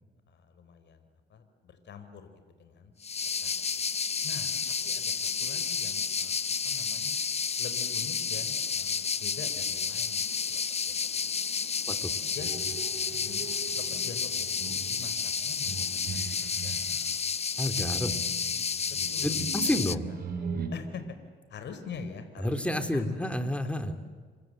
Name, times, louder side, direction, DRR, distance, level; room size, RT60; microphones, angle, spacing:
voice 1, 0.3-2.9 3.4-3.6 4.2-4.5 4.8-7.2 7.6-11.3 12.3-12.8 13.1-13.5 13.7-17.1 19.1-20.2 20.7-21.2 21.5-23.0, left 5 dB, 60° left, 8 dB, 4.2 m, -45 dB
sound 1, 3.0-20.0, left 6 dB, 30° left, 0.7 m, -31 dB
sound 2, 12.4-17.1 17.8-20.7, right 5 dB, 55° right, 5.8 m, -40 dB
voice 2, 17.6-18.1 19.2-20.0 22.4-23.9, left 1 dB, 5° left, 7 dB, 3.1 m, -29 dB
29.0 x 25.5 x 7.8 m, 1.5 s
cardioid pair, 90°, 20 cm